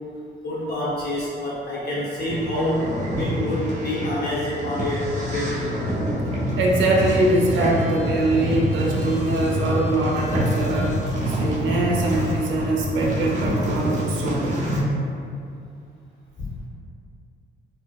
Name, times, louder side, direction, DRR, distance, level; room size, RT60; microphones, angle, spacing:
voice 1, 0.4-2.9 3.1-5.8, left 1 dB, 55° left, -8 dB, 1.0 m, -27 dB
sound 1, 2.2-14.8, equal, 35° right, 0.8 m, -26 dB
voice 2, 6.6-11.0 11.3-14.7, right 1 dB, 75° right, -2 dB, 0.6 m, -23 dB
4.2 x 2.0 x 2.3 m, 2.4 s
cardioid pair, 90°, 20 cm